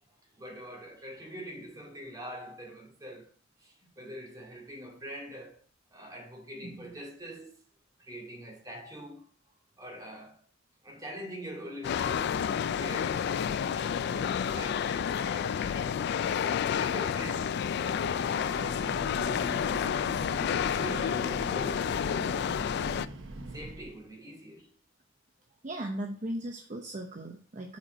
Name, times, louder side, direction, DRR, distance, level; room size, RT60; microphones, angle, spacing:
voice 1, 0.4-3.3 3.6-5.6 5.9-7.6 8.0-9.2 9.8-10.4 10.8-12.4 12.8-16.0 16.8-20.1 20.7-22.6 23.5-24.7, equal, 20° right, 2.2 m, -44 dB
voice 2, 6.6-6.9 25.6-27.8, right 1 dB, 40° right, 0.7 m, -37 dB
sound 1, 11.8-23.1, left 8 dB, 60° left, 0.3 m, -30 dB
Breathing / Train, 18.4-24.0, right 2 dB, 80° right, 0.9 m, -42 dB
7.3 x 4.5 x 4.2 m
head